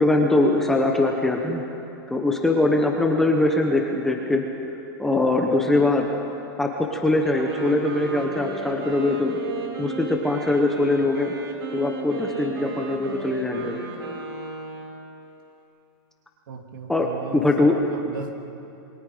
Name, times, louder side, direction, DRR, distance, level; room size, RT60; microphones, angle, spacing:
voice 1, 0.0-1.6 2.1-4.5 5.0-6.1 6.6-9.4 9.8-11.3 11.7-13.8 16.9-17.8, left 2 dB, 5° left, 1 dB, 0.9 m, -22 dB
Wind instrument woodwind instrument, 7.2-15.1, right 3 dB, 80° right, 5.0 m, -34 dB
voice 2, 16.5-18.3, right 5 dB, 60° right, 4 dB, 2.6 m, -37 dB
28.0 x 22.0 x 5.0 m, 2.8 s
supercardioid pair, 175°, 12 cm